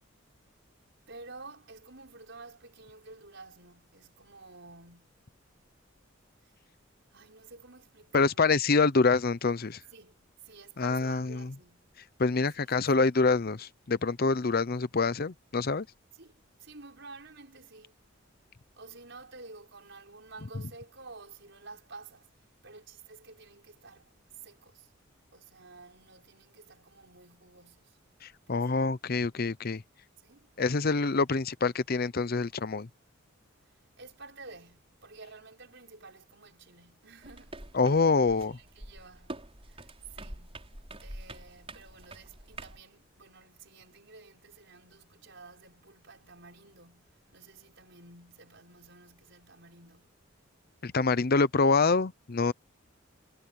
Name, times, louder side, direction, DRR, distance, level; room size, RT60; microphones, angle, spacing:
voice 1, 1.1-5.1 6.4-6.6 7.1-8.6 9.9-11.9 12.5-13.2 16.1-17.9 18.8-22.3 22.6-24.2 24.4-24.9 25.3-28.0 28.5-28.8 30.2-30.5 34.0-37.6 38.2-40.7 41.0-50.3, right 3 dB, 60° right, 6.2 m, -51 dB
voice 2, 8.1-9.8 10.8-11.5 12.2-15.9 28.2-29.8 30.6-32.9 37.7-38.6 50.8-52.5, left 4 dB, 45° left, 0.7 m, -26 dB
sound 1, 37.2-42.8, right 1 dB, 30° right, 6.0 m, -46 dB
head